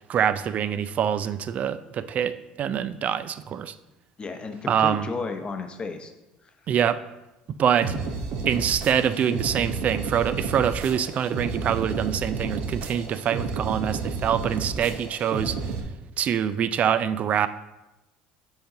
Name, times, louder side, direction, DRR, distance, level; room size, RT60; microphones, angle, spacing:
voice 1, 0.0-3.8 4.7-5.1 6.7-7.0 7.5-8.0 8.5-15.7 16.2-17.5, right 8 dB, 45° right, 14 dB, 0.3 m, -25 dB
voice 2, 4.2-6.1 6.4-6.5, left 4 dB, 30° left, 6 dB, 0.7 m, -33 dB
sound 1, 7.8-15.8, right 4 dB, 65° right, 0.9 m, -31 dB
7.0 x 3.8 x 3.8 m, 0.99 s
hypercardioid pair, 75°, 3 cm